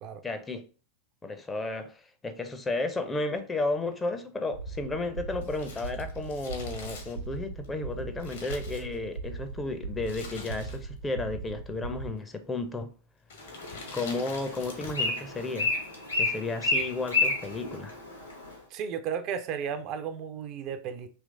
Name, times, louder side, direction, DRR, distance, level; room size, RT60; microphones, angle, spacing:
voice 1, 0.2-0.6 1.2-12.9 13.9-15.7 16.2-18.0, left 2 dB, 15° left, 0.5 m, -33 dB
sound 1, 4.5-12.1, right 4 dB, 85° right, 0.9 m, -39 dB
Crumpling crinkling, 5.4-9.4 10.0-11.1 11.3-11.4 12.2-12.6 13.2-15.2 15.4-15.5, left 4 dB, 60° left, 1.1 m, -46 dB
Bird, 13.4-18.5, left 3 dB, 85° left, 1.5 m, -31 dB
voice 2, 18.7-21.1, right 7 dB, 40° right, 0.4 m, -34 dB
3.4 x 3.0 x 3.7 m
figure-of-eight pair, 90°, 0 cm